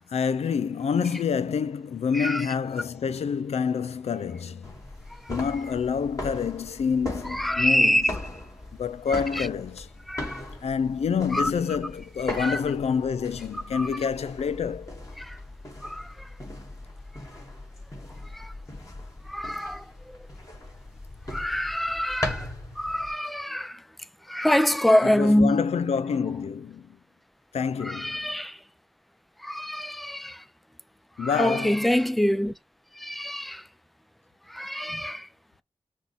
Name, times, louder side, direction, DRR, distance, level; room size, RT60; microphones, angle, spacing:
voice 1, 0.1-4.7 5.3-8.0 8.8-9.9 10.6-15.0 25.0-26.9 27.5-28.4 31.2-31.9, left 6 dB, 90° left, 0.4 m, -27 dB
voice 2, 2.1-2.5 5.2-5.4 7.3-8.2 9.1-9.5 10.1-10.4 11.3-11.5 12.4-12.6 13.7-13.9 15.2-15.4 15.8-16.3 18.3-18.5 19.3-19.8 21.3-22.5 22.8-23.8 24.3-25.6 27.8-28.6 29.4-30.4 31.2-32.5 33.0-33.6 34.5-35.3, left 1 dB, ahead, 0.4 m, -25 dB
sound 1, 4.6-23.1, left 1 dB, 30° left, 2.4 m, -39 dB
6.0 x 2.2 x 3.5 m
cardioid pair, 40°, 11 cm